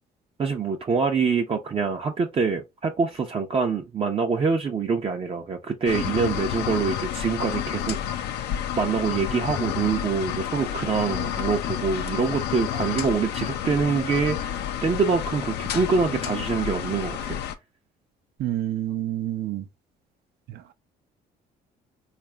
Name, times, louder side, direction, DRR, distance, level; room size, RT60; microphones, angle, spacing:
voice 1, 0.4-8.3 8.8-17.4, right 5 dB, 30° right, 0.7 m, -25 dB
sound 1, 5.9-17.6, left 10 dB, 80° left, 0.6 m, -30 dB
voice 2, 18.4-19.6 20.5-20.7, right 13 dB, 70° right, 0.7 m, -28 dB
4.0 x 2.5 x 3.3 m
cardioid pair, 110°, 17 cm